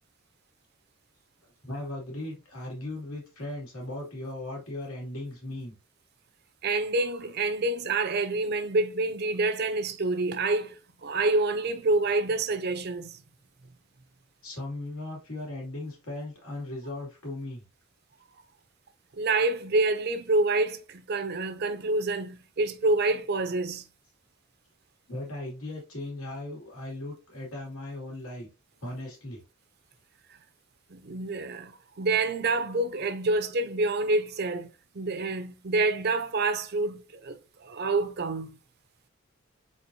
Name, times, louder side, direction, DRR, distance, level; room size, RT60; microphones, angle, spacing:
voice 1, 1.6-5.8 14.4-17.6 25.1-28.5 28.8-29.4, left 1 dB, 85° left, 2.4 m, -37 dB
voice 2, 6.6-10.7 11.0-13.2 19.2-23.8 30.9-34.7 34.9-37.3 37.6-38.6, right 2 dB, 50° right, 0.6 m, -27 dB
4.3 x 4.0 x 2.7 m
head